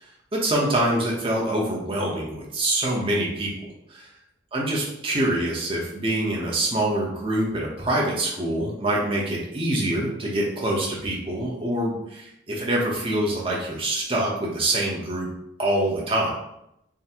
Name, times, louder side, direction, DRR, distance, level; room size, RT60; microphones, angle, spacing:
voice 1, 0.3-3.7 4.5-15.3 15.6-16.3, right 1 dB, 25° right, -3 dB, 0.9 m, -25 dB
3.7 x 2.2 x 4.4 m, 0.79 s
head